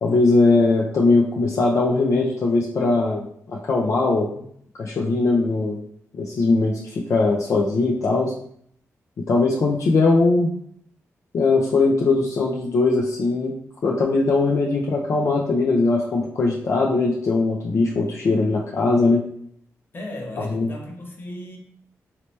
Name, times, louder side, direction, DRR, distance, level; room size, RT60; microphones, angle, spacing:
voice 1, 0.0-4.4 4.7-5.8 6.1-8.3 9.3-10.5 11.3-13.5 13.8-19.2 20.4-20.7, left 3 dB, 60° left, -2 dB, 0.5 m, -20 dB
voice 2, 19.9-21.6, left 1 dB, 40° left, 0 dB, 0.9 m, -35 dB
3.1 x 2.8 x 3.2 m, 0.65 s
cardioid pair, 90°, 6 cm